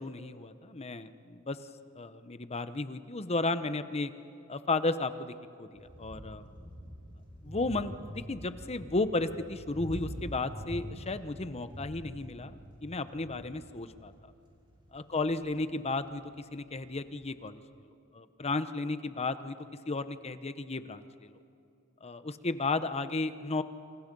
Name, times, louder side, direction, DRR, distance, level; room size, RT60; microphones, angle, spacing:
voice 1, 0.0-1.6 2.0-4.1 4.5-5.3 5.6-6.5 7.4-14.1 14.9-17.6 18.1-19.6 19.9-21.4 22.0-23.6, left 3 dB, 30° left, 12 dB, 0.9 m, -34 dB
sound 1, 5.7-17.2, equal, 25° right, 5.6 m, -45 dB
28.5 x 27.5 x 5.4 m, 2.6 s
head